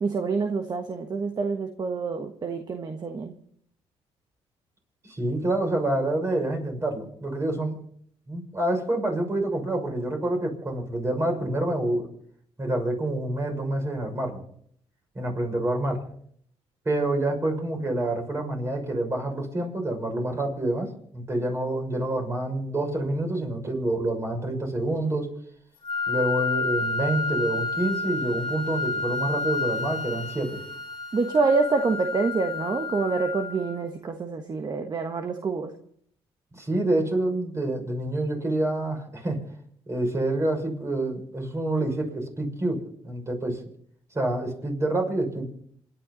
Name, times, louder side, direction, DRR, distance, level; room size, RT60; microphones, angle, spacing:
voice 1, 0.0-3.3 31.1-35.7, right 4 dB, 40° right, 6 dB, 1.4 m, -26 dB
voice 2, 5.0-7.8 8.3-12.1 12.6-14.4 15.1-16.0 16.8-25.3 26.1-30.6 36.5-39.4 39.9-43.6 44.1-45.5, right 1 dB, 25° right, 3 dB, 6.4 m, -27 dB
Wind instrument woodwind instrument, 25.8-33.8, left 3 dB, 45° left, 2.2 m, -30 dB
27.5 x 11.0 x 4.1 m, 0.65 s
cardioid pair, 85°, 11 cm